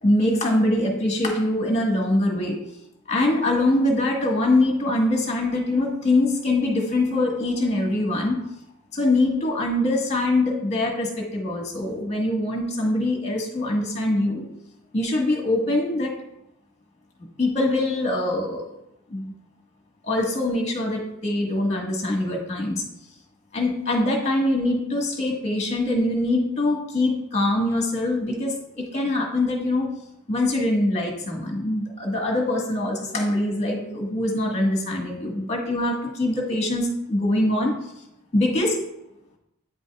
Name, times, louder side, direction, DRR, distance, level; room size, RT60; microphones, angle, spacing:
voice 1, 0.0-2.6 3.1-8.4 8.9-14.4 14.9-16.1 17.4-18.7 19.1-19.3 20.0-22.8 23.5-29.9 30.3-37.7 38.3-38.8, left 1 dB, 30° left, 0 dB, 1.5 m, -23 dB
9.2 x 5.3 x 2.4 m, 0.83 s
head